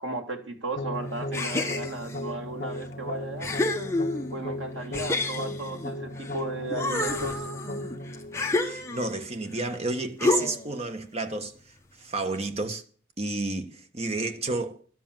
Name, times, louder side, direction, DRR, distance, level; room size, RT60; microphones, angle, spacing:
voice 1, 0.0-3.5 4.3-7.5, right 2 dB, 70° right, 2.3 m, -35 dB
sound 1, 0.8-9.7, left 1 dB, 40° left, 1.3 m, -37 dB
sound 2, 1.3-2.2 2.8-2.9 3.4-4.4 4.9-6.4 6.7-9.2 10.2-10.8, left 2 dB, 15° left, 1.3 m, -29 dB
voice 2, 8.6-11.5 12.0-12.8 13.2-14.8, right 2 dB, 30° right, 1.4 m, -31 dB
12.5 x 7.5 x 7.5 m
head